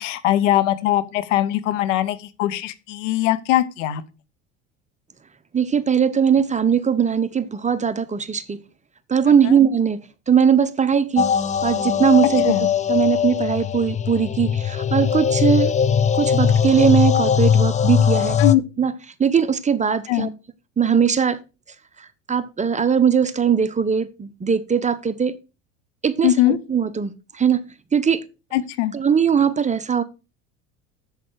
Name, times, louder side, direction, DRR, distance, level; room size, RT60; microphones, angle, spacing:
voice 1, 0.0-4.0 9.4-9.6 12.4-12.7 18.4-18.6 20.1-20.3 26.2-26.6 28.5-28.9, left 13 dB, 70° left, 1.0 m, -21 dB
voice 2, 5.5-8.6 9.1-10.0 10.3-11.3 11.6-12.5 12.9-15.7 16.1-18.4 18.8-18.9 19.2-20.3 20.8-21.4 22.3-25.3 26.0-27.6 27.9-28.2 28.9-30.0, right 7 dB, 20° right, 0.9 m, -20 dB
sound 1, 11.2-18.6, left 7 dB, 20° left, 0.5 m, -20 dB
8.1 x 7.3 x 4.7 m
hypercardioid pair, 70°, 38 cm